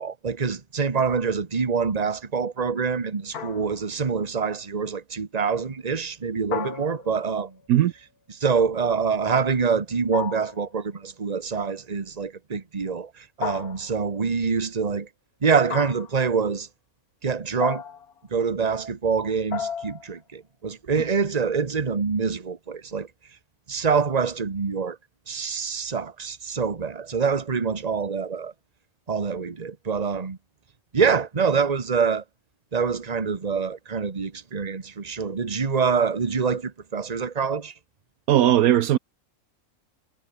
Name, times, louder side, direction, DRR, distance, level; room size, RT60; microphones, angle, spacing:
voice 1, 0.0-7.5 8.3-15.1 15.4-16.7 17.2-17.8 18.3-23.1 23.7-25.0 25.3-28.5 29.1-30.4 30.9-32.2 32.7-37.7, right 5 dB, 30° right, 1.3 m, -25 dB
sound 1, 3.3-4.0 6.5-7.4 10.1-10.7 13.4-14.1 15.7-16.2 17.6-18.2 19.5-20.1, left 7 dB, 80° left, 2.1 m, -33 dB
voice 2, 38.3-39.0, right 12 dB, 75° right, 1.1 m, -18 dB
omnidirectional pair, 1.6 m